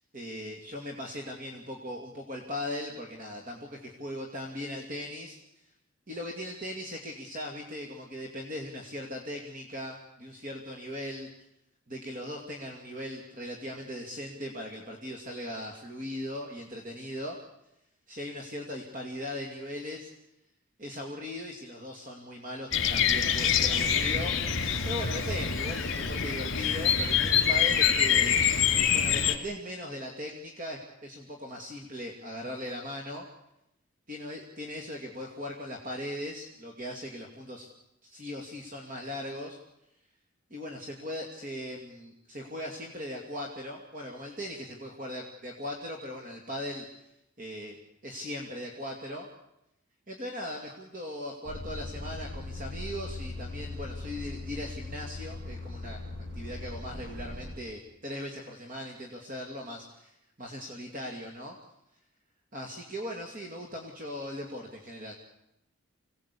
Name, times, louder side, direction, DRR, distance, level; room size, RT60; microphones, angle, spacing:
voice 1, 0.1-5.4 6.1-11.3 11.9-17.4 18.1-20.1 20.8-28.4 28.9-33.2 34.1-37.7 38.0-39.6 40.5-46.9 47.4-47.8 48.0-49.3 50.1-56.0 56.3-61.6 62.5-65.1, left 1 dB, 40° right, 1 dB, 2.5 m, -39 dB
Bird vocalization bird call bird song, 22.7-29.3, left 8 dB, 60° left, 2.6 m, -25 dB
Truck, 51.4-57.6, left 2 dB, 55° right, 6.5 m, -39 dB
25.5 x 18.0 x 8.6 m, 0.87 s
head